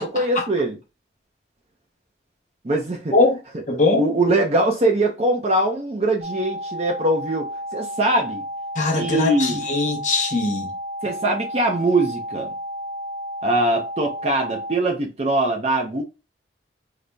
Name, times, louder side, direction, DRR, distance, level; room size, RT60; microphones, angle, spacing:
voice 1, 0.0-0.8 2.6-3.1 4.0-8.4 8.9-9.7 11.0-12.5 13.4-16.0, right 1 dB, 35° right, 0.5 m, -22 dB
voice 2, 3.7-4.0 8.8-10.7, left 3 dB, 40° left, 0.7 m, -20 dB
sound 1, 6.2-14.7, equal, 75° right, 0.8 m, -32 dB
4.0 x 2.0 x 3.3 m
head